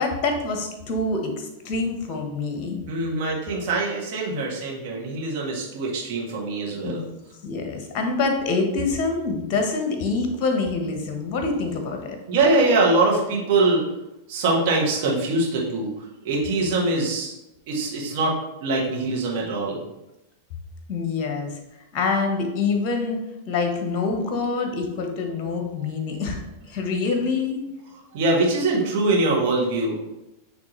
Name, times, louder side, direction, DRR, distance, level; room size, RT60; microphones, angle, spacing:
voice 1, 0.0-2.8 6.8-12.2 20.9-21.6 21.9-23.2 23.5-27.6, left 4 dB, 40° left, 4 dB, 1.2 m, -26 dB
voice 2, 2.9-7.0 12.3-13.8 14.3-15.9 16.2-17.3 17.7-19.8 28.1-30.0, right 2 dB, 45° right, -3 dB, 1.7 m, -23 dB
8.7 x 3.3 x 3.2 m, 0.94 s
figure-of-eight pair, 90°, 0 cm